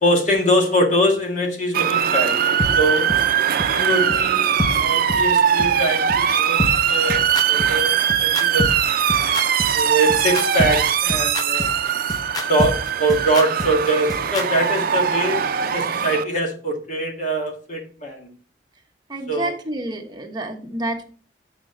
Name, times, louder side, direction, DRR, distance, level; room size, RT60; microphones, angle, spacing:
voice 1, 0.0-2.3 2.7-3.1 3.7-8.7 9.7-11.7 12.4-15.5 15.7-18.3 19.3-19.5, right 1 dB, 45° left, 1 dB, 2.0 m, -23 dB
Motor vehicle (road) / Siren, 1.7-16.2, right 8 dB, 55° right, 0.5 m, -21 dB
sound 1, 2.6-2.7 3.1-3.2 3.6-3.7 4.1-4.2 4.6-4.7 5.1-5.2 5.6-5.7 6.1-6.2 6.6-14.4, left 1 dB, 20° left, 0.9 m, -26 dB
voice 2, 19.1-21.0, right 1 dB, 25° right, 2 dB, 1.2 m, -29 dB
8.9 x 5.0 x 3.9 m, 0.43 s
head